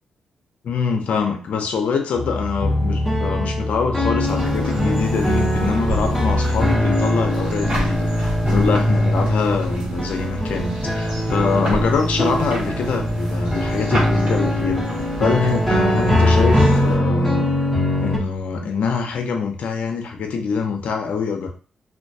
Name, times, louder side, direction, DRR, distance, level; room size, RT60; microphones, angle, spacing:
voice 1, 0.6-14.8 15.2-17.5 18.0-21.5, left 5 dB, 75° left, 3 dB, 0.5 m, -24 dB
sound 1, 2.1-18.2, left 1 dB, ahead, 0.8 m, -21 dB
sound 2, 4.2-17.0, equal, 55° right, 1.2 m, -31 dB
2.2 x 2.2 x 2.6 m, 0.37 s
cardioid pair, 70°, 2 cm